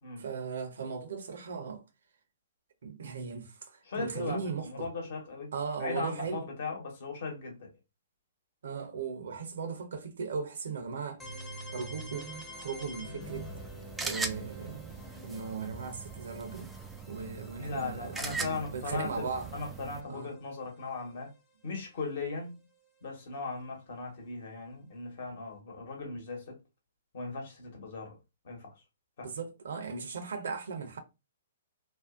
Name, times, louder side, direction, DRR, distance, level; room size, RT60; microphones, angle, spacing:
voice 1, 0.2-1.8 2.8-4.9 5.5-6.5 8.6-11.2 11.7-13.5 14.0-14.8 15.2-16.7 17.1-19.5 20.1-20.4 29.2-31.0, right 5 dB, 70° right, 0.6 m, -38 dB
voice 2, 3.9-5.5 5.8-7.7 17.6-21.3 21.6-22.6 23.0-26.6 27.1-28.2 28.4-28.7 29.2-29.3, left 3 dB, 60° left, 1.0 m, -38 dB
sound 1, 11.2-20.9, equal, 15° left, 0.7 m, -47 dB
sound 2, 13.2-20.0, right 4 dB, 10° right, 0.3 m, -41 dB
2.5 x 2.0 x 2.4 m
hypercardioid pair, 125°, 0 cm